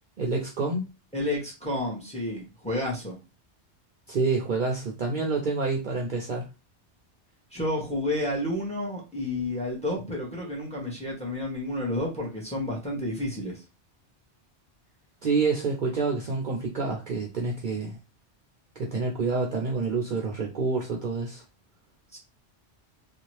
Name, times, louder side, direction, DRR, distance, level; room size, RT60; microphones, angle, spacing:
voice 1, 0.2-0.9 4.1-6.5 15.2-18.0 18.8-21.4, right 4 dB, 55° right, 0 dB, 0.6 m, -28 dB
voice 2, 1.1-3.2 7.5-13.6 22.1-22.2, left 1 dB, 5° left, -2 dB, 0.9 m, -30 dB
2.7 x 2.4 x 3.1 m, 0.28 s
omnidirectional pair, 1.2 m